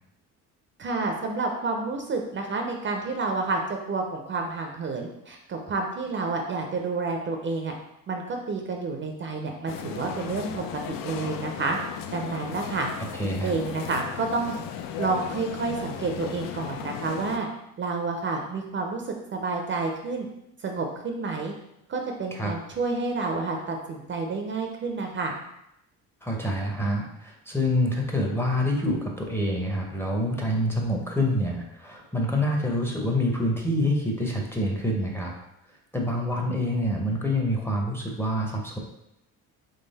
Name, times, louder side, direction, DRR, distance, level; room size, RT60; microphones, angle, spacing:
voice 1, 0.8-3.6 3.9-7.7 8.1-11.8 12.1-12.9 13.2-14.5 15.0-17.5 17.8-20.3 20.6-21.5 21.9-25.3, right 3 dB, 35° right, 2 dB, 0.5 m, -29 dB
sound 1, 9.7-17.4, left 9 dB, 70° left, 0.5 m, -36 dB
voice 2, 13.2-13.5 22.3-22.5 26.2-35.3 35.9-38.8, left 1 dB, 5° left, 0 dB, 0.7 m, -26 dB
3.9 x 3.3 x 4.0 m, 0.81 s
cardioid pair, 135°, 35 cm